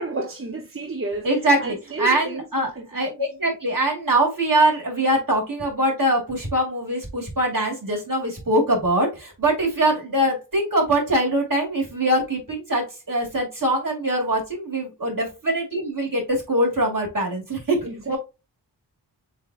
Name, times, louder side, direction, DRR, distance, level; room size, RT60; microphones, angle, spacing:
voice 1, 0.0-1.3 1.6-3.2 17.8-18.1, right 2 dB, 30° right, 0.7 m, -31 dB
voice 2, 1.2-18.2, right 1 dB, 50° right, 2.5 m, -23 dB
7.4 x 2.8 x 2.4 m
wide cardioid pair, 60°, 42 cm